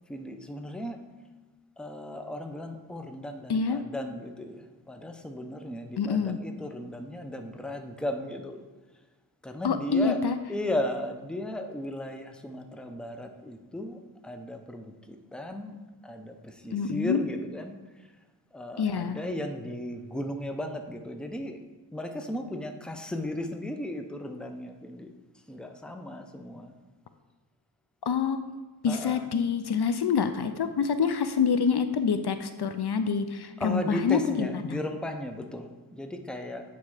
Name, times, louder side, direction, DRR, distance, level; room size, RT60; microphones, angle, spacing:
voice 1, 0.1-1.0 1.8-8.6 9.4-10.2 10.5-15.8 16.0-17.8 18.5-21.6 21.9-25.1 25.5-26.7 28.9-29.3 33.6-36.6, left 1 dB, ahead, 5 dB, 0.6 m, -36 dB
voice 2, 6.0-6.4 9.6-10.4 16.7-17.2 18.8-19.2 28.0-28.4 28.8-34.8, left 6 dB, 60° left, 9 dB, 0.5 m, -26 dB
8.5 x 4.2 x 4.8 m, 1.2 s
wide cardioid pair, 55°, 44 cm